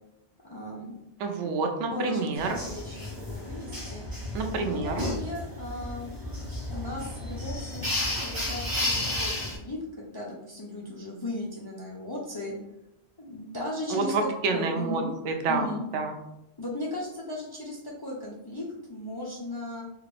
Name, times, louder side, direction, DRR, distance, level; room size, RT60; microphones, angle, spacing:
voice 1, 0.4-1.0 1.9-4.0 4.5-6.1 6.7-12.5 13.2-14.1 14.5-15.1 15.5-15.8 16.6-19.8, left 1 dB, 40° left, -4 dB, 0.3 m, -36 dB
voice 2, 1.2-2.6 4.3-5.0 13.9-15.7 15.9-16.1, right 4 dB, 90° right, 4 dB, 0.9 m, -28 dB
sound 1, 2.4-9.6, left 1 dB, 20° right, 1.0 m, -33 dB
3.2 x 2.5 x 3.2 m, 0.86 s
omnidirectional pair, 1.2 m